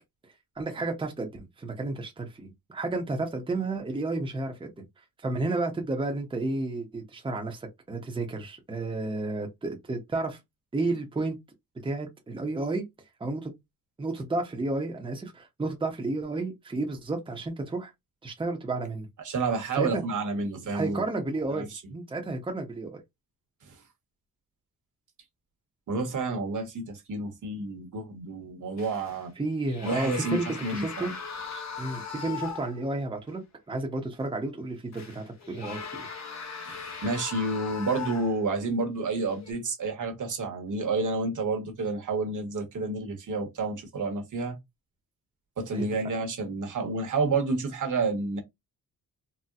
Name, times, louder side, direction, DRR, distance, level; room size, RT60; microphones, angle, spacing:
voice 1, 0.6-4.7 5.2-10.4 10.7-11.4 11.8-12.8 13.2-13.6 14.0-17.9 18.2-19.1 19.7-20.0 20.7-23.0 29.4-31.1 31.8-33.4 33.7-35.8 45.7-45.8, right 2 dB, 15° right, 0.7 m, -31 dB
voice 2, 19.2-21.0 21.5-21.6 25.9-29.3 29.8-31.1 31.8-32.0 36.7-44.6 45.6-48.4, right 3 dB, 55° right, 1.1 m, -30 dB
sound 1, 28.8-29.2 29.7-32.9 33.3-33.4 34.9-38.6 39.3-39.5, left 6 dB, 50° left, 0.8 m, -39 dB
4.1 x 2.1 x 2.3 m
cardioid pair, 120°, 36 cm